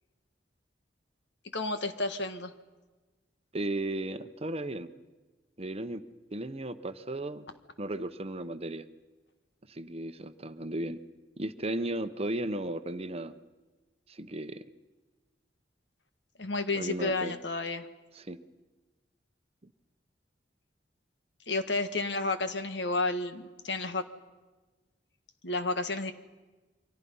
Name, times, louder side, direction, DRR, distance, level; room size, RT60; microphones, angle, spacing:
voice 1, 1.5-2.5 16.4-17.9 21.5-24.0 25.4-26.1, left 3 dB, 75° left, 9 dB, 1.6 m, -31 dB
voice 2, 3.5-4.9 5.6-6.0 6.3-7.5 7.8-8.8 9.7-11.0 11.4-13.3 14.1-14.6 16.7-17.4 18.1-18.4, right 1 dB, 35° right, 11 dB, 0.9 m, -35 dB
29.0 x 24.5 x 5.6 m, 1.2 s
head